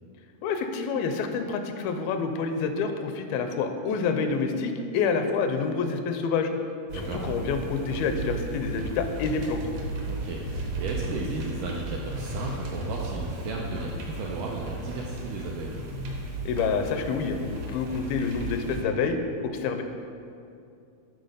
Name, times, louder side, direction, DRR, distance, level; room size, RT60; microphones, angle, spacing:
voice 1, 0.4-6.5 6.9-9.6 16.5-19.2 19.4-19.8, left 5 dB, 85° left, 7 dB, 2.4 m, -28 dB
sound 1, 6.9-18.8, right 1 dB, 65° right, 1.8 m, -35 dB
voice 2, 6.9-7.3 10.1-15.8, right 3 dB, 85° right, -2 dB, 1.9 m, -35 dB
9.8 x 4.0 x 5.4 m, 2.5 s
omnidirectional pair, 4.2 m